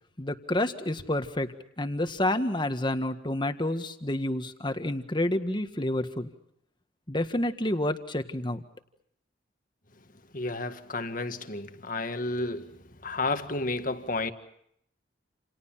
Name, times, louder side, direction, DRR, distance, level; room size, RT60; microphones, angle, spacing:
voice 1, 0.2-1.5 1.8-6.3 7.1-8.6, left 1 dB, 25° left, 1.7 m, -29 dB
voice 2, 10.3-14.3, left 2 dB, 45° left, 1.8 m, -32 dB
29.0 x 29.0 x 5.8 m
head